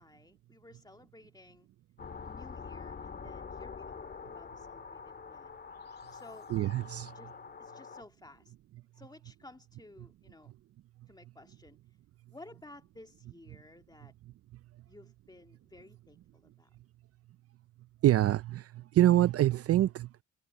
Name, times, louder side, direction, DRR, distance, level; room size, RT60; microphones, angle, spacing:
voice 1, 0.0-1.7 2.2-5.6 6.1-6.5 7.2-7.3 7.6-8.5 9.0-10.5 11.1-11.8 12.3-14.1 14.9-16.7, left 2 dB, 15° left, 2.0 m, -55 dB
sound 1, 2.0-8.0, left 5 dB, 35° left, 1.8 m, -45 dB
voice 2, 6.5-7.1 18.0-20.2, right 13 dB, 50° right, 0.4 m, -26 dB
cardioid pair, 90°, 30 cm